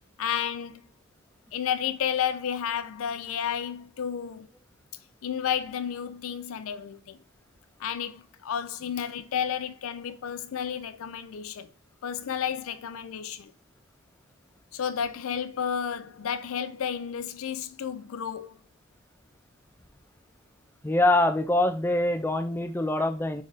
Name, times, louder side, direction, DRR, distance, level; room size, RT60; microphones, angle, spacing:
voice 1, 0.2-0.9 1.5-4.5 5.2-7.2 7.8-11.7 12.0-13.5 14.7-18.6, left 8 dB, 85° left, 0.4 m, -31 dB
voice 2, 20.8-23.4, left 1 dB, 10° left, 0.4 m, -24 dB
3.6 x 3.2 x 4.0 m
head